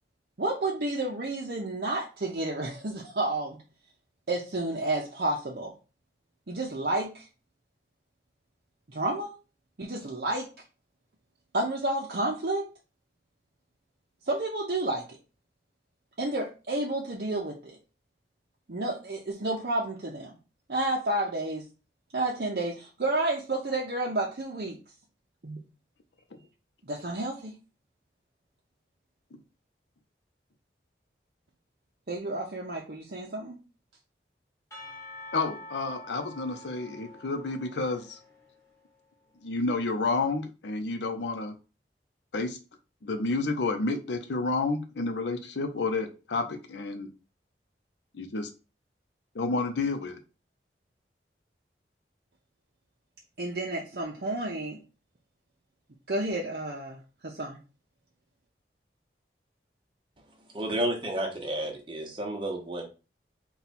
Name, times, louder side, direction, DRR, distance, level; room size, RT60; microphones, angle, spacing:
voice 1, 0.4-3.6 4.3-5.7 6.5-7.3 8.9-9.3 9.8-10.5 11.5-12.6 14.3-15.0 16.2-17.8 18.7-20.3 20.7-21.6 22.1-24.8 25.4-25.6 26.8-27.5 32.1-33.6 53.4-54.8 56.1-57.0 57.2-57.6, right 2 dB, 60° right, -2 dB, 0.7 m, -30 dB
Percussion / Church bell, 34.7-38.8, left 2 dB, 15° left, 1.2 m, -47 dB
voice 2, 35.3-38.2 39.4-41.6 42.3-42.6 43.0-47.1 48.1-48.5 49.3-50.2, left 3 dB, 85° left, 7 dB, 0.6 m, -30 dB
voice 3, 60.5-62.8, right 1 dB, 30° right, 1 dB, 0.9 m, -31 dB
4.1 x 2.3 x 4.1 m, 0.33 s
head